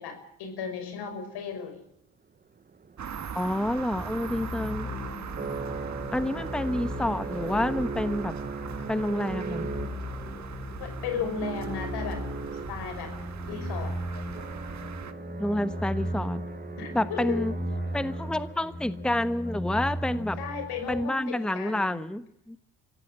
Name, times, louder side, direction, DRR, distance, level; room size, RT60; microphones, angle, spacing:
voice 1, 0.0-1.8 6.4-6.5 10.8-12.2 12.7-13.2 13.5-14.0 16.8-17.4 20.4-22.0, left 6 dB, 80° left, 8 dB, 5.9 m, -35 dB
sound 1, 2.6-18.8, right 5 dB, 25° right, 0.8 m, -40 dB
sound 2, 3.0-15.1, right 7 dB, 45° right, 1.8 m, -41 dB
voice 2, 3.3-4.9 6.1-8.3 8.9-9.7 15.4-16.4 16.9-17.5 17.9-20.4 20.9-22.6, left 1 dB, ahead, 12 dB, 1.2 m, -28 dB
sound 3, 4.0-21.0, left 1 dB, 25° left, 3.5 m, -37 dB
23.5 x 16.0 x 7.6 m, 0.77 s
cardioid pair, 80°, 39 cm